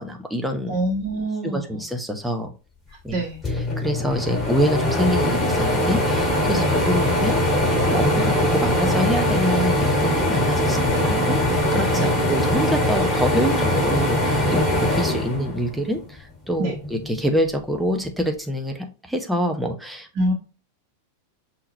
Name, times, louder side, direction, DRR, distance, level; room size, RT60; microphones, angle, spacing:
voice 1, 0.0-0.8 1.4-2.5 3.0-3.2 3.8-7.4 7.7-11.4 11.7-16.7 17.1-20.1, equal, 5° right, 3 dB, 0.8 m, -26 dB
voice 2, 0.7-1.8 3.1-3.4 6.5-6.8 10.9-11.0 12.0-12.1 16.6-16.8 20.1-20.3, right 1 dB, 35° right, -4 dB, 1.3 m, -26 dB
sound 1, 3.1-3.2 3.4-16.0 16.5-17.6, left 1 dB, 15° left, 2.5 m, -21 dB
5.6 x 2.9 x 3.1 m, 0.35 s
figure-of-eight pair, 90°, 0 cm